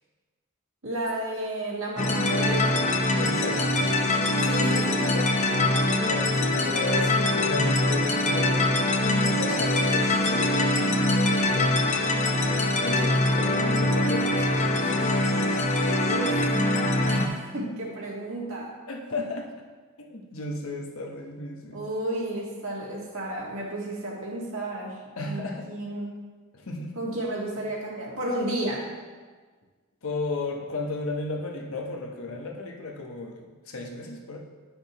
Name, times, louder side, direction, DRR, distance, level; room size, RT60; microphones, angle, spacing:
voice 1, 0.8-3.0 4.4-5.3 16.0-16.5 17.1-17.2 17.5-18.7 21.7-26.2 27.0-28.9, right 1 dB, 65° right, -4 dB, 1.9 m, -32 dB
sound 1, 2.0-17.3, left 1 dB, 30° left, 0.6 m, -23 dB
voice 2, 3.2-4.0 6.0-7.1 7.4-11.8 12.8-14.9 17.1-17.5 18.9-19.5 20.0-21.8 25.2-25.7 26.5-27.0 30.0-34.4, left 2 dB, 65° left, 0 dB, 1.1 m, -34 dB
10.0 x 6.4 x 3.0 m, 1.4 s
head